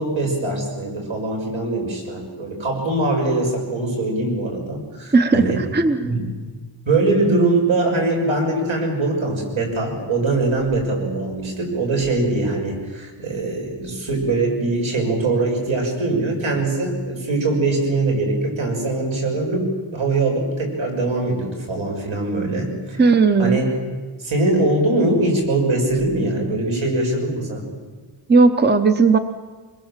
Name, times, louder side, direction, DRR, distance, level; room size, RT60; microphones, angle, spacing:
voice 1, 0.0-5.6 6.0-6.3 6.9-23.0 23.4-23.8 24.2-27.6, right 2 dB, 80° right, 0 dB, 6.5 m, -22 dB
voice 2, 5.1-6.1 23.0-23.6 28.3-29.2, right 4 dB, 20° right, 9 dB, 0.8 m, -16 dB
24.5 x 21.5 x 7.4 m, 1.4 s
wide cardioid pair, 180°, 47 cm